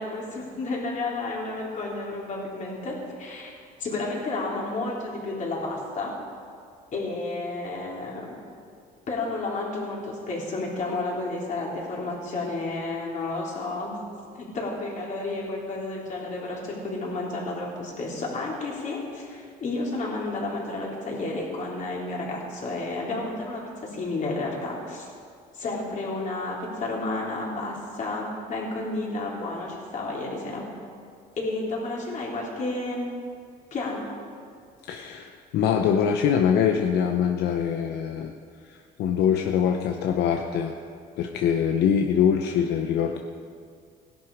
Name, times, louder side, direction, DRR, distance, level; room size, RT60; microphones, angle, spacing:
voice 1, 0.0-3.5 3.8-6.1 6.9-8.3 9.1-14.0 14.4-25.1 25.5-30.6 31.4-33.1 33.7-34.1, left 2 dB, 45° left, -3 dB, 3.7 m, -31 dB
voice 2, 34.9-38.3 38.6-40.8 41.2-43.2, left 8 dB, 75° left, 3 dB, 0.8 m, -23 dB
16.5 x 11.0 x 5.0 m, 2.2 s
cardioid pair, 110°, 17 cm